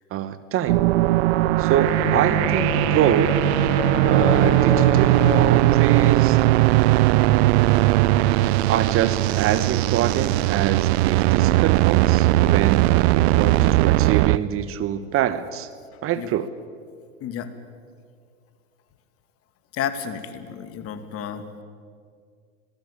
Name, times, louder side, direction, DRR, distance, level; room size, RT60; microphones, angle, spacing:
voice 1, 0.1-0.8 1.6-3.4 4.1-6.4 8.7-15.7 16.0-16.5, right 11 dB, 35° right, 14 dB, 1.1 m, -25 dB
sound 1, 0.7-14.4, right 17 dB, 55° right, 0.7 m, -19 dB
Bowed string instrument, 1.7-6.6, left 6 dB, 55° left, 5.7 m, -29 dB
voice 2, 13.3-13.8 16.1-16.3 17.2-17.5 19.7-21.6, left 8 dB, 35° left, 9 dB, 2.4 m, -32 dB
25.5 x 19.0 x 8.7 m, 2.1 s
hypercardioid pair, 105°, 39 cm